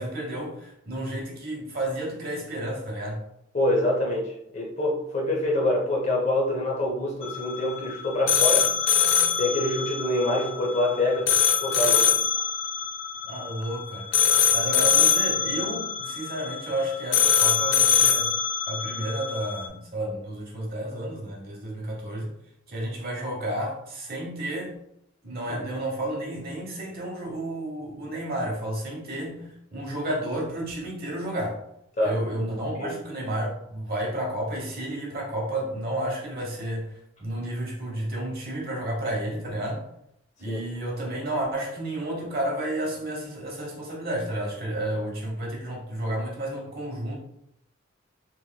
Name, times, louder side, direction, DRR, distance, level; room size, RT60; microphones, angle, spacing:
voice 1, 0.0-3.2 13.2-14.2 14.5-18.3 18.7-22.3 22.7-24.7 25.2-31.6 32.0-39.8 40.4-47.1, right 1 dB, 50° right, -2 dB, 1.0 m, -31 dB
voice 2, 3.5-8.7 9.4-11.3 11.6-12.2 32.0-32.2 32.7-33.0 40.5-40.6, left 1 dB, 35° left, -2 dB, 0.7 m, -25 dB
sound 1, 7.2-19.7, left 7 dB, 65° left, 0.4 m, -24 dB
3.0 x 2.9 x 2.2 m, 0.77 s
head